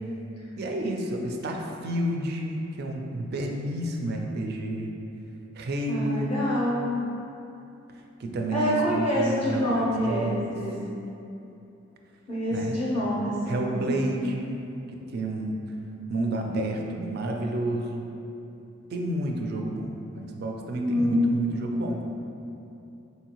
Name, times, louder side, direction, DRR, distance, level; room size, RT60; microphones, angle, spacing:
voice 1, 0.6-5.0 5.5-6.4 7.9-10.5 12.5-12.8 13.5-15.6 16.1-18.1 18.9-19.9 20.1-22.1, right 1 dB, 50° right, 2 dB, 0.4 m, -30 dB
voice 2, 5.9-6.9 8.5-10.8 12.3-14.1 20.8-21.3 21.6-21.8, equal, 25° left, -8 dB, 0.5 m, -26 dB
4.4 x 2.7 x 2.8 m, 2.8 s
head